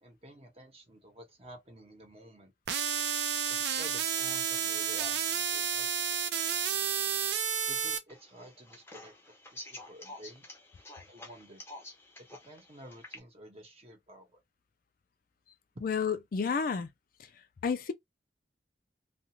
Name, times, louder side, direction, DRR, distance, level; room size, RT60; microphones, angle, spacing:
voice 1, 0.0-2.5 3.5-6.6 7.7-10.5 11.1-11.6 12.2-14.4, right 1 dB, 35° right, 0.9 m, -52 dB
sound 1, 2.7-8.0, right 8 dB, 70° right, 0.5 m, -31 dB
sound 2, 8.1-13.2, left 1 dB, 15° left, 0.6 m, -49 dB
voice 2, 15.8-16.9 17.2-17.3 17.6-17.9, left 6 dB, 50° left, 0.4 m, -30 dB
2.4 x 2.3 x 3.0 m
head